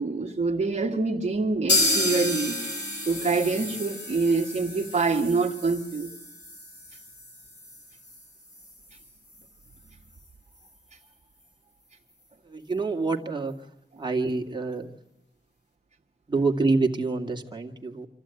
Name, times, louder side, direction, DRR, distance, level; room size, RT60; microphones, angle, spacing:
voice 1, 0.0-2.6 3.1-6.1, right 4 dB, 40° right, -2 dB, 1.7 m, -26 dB
sound 1, 1.7-9.4 9.7-9.8 10.1-10.2 10.7-10.8, left 1 dB, 75° left, 7.1 m, -31 dB
voice 2, 12.5-13.5 14.0-14.9 16.3-18.1, right 3 dB, 25° right, 2 dB, 2.2 m, -26 dB
26.0 x 15.0 x 9.1 m, 0.90 s
wide cardioid pair, 130°, 18 cm